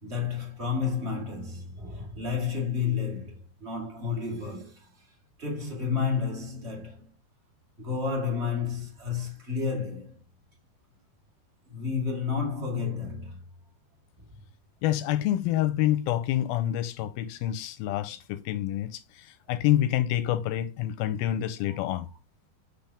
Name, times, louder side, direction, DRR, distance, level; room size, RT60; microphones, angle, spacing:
voice 1, 0.0-5.1 5.4-7.1 7.8-10.2 11.7-13.4 21.7-22.0, left 6 dB, 25° right, 1.5 m, -31 dB
voice 2, 14.8-22.1, left 12 dB, 80° left, 2.4 m, -27 dB
7.2 x 5.7 x 3.4 m
omnidirectional pair, 4.5 m